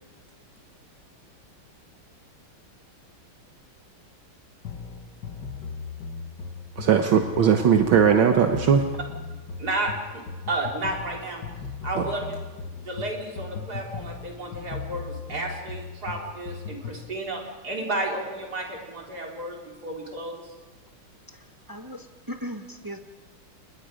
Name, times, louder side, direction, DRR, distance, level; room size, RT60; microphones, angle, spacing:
sound 1, 4.7-17.1, left 5 dB, 60° left, 1.7 m, -37 dB
voice 1, 6.8-8.8 12.0-12.1, right 7 dB, 70° right, 4 dB, 1.8 m, -19 dB
voice 2, 9.6-11.4 11.8-12.3 12.7-20.4, right 2 dB, 45° right, -1 dB, 4.2 m, -32 dB
voice 3, 21.7-23.0, equal, 20° right, 5 dB, 0.5 m, -37 dB
29.5 x 19.5 x 5.1 m, 1.3 s
omnidirectional pair, 2.3 m